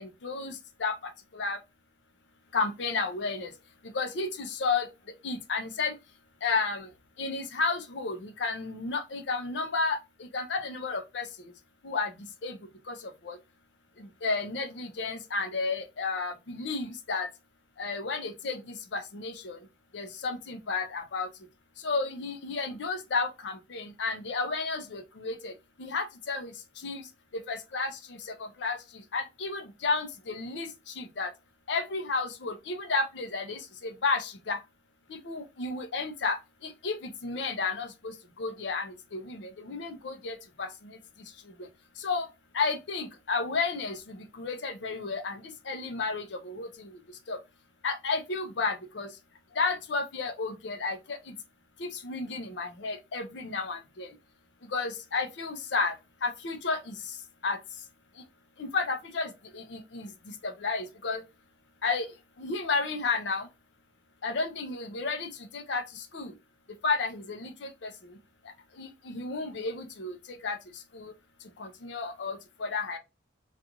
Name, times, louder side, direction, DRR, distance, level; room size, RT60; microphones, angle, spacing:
voice 1, 0.0-1.6 2.5-3.5 3.8-4.9 5.2-6.0 6.4-6.9 7.2-11.5 11.8-12.6 12.8-13.4 14.0-17.3 17.8-19.7 19.9-21.3 21.8-31.3 31.7-34.6 35.1-41.7 42.0-42.3 42.5-47.4 47.8-49.2 49.5-51.3 51.8-54.2 54.6-57.2 57.4-57.6 58.2-58.3 58.6-61.2 61.8-62.1 62.4-63.5 64.2-66.3 66.8-68.2 68.4-71.1 71.4-73.0, left 4 dB, 75° left, 0.6 m, -33 dB
2.5 x 2.4 x 2.8 m
head